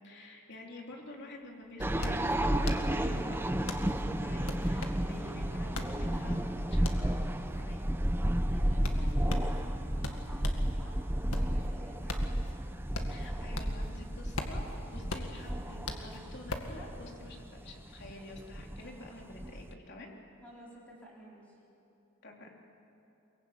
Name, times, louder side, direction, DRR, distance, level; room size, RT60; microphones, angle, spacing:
voice 1, 0.0-7.2 7.5-7.9 13.1-20.1 22.2-22.5, left 2 dB, 50° left, 0 dB, 3.4 m, -48 dB
sound 1, 1.1-1.2 1.4-10.7 11.1-13.9 14.2-16.8, left 2 dB, 75° left, 2.0 m, -41 dB
sound 2, 1.8-19.7, right 1 dB, 10° right, 0.8 m, -32 dB
voice 2, 8.3-11.0 11.3-12.4 20.4-21.5, equal, 5° left, -6 dB, 4.9 m, -51 dB
23.0 x 23.0 x 9.0 m, 2.9 s
head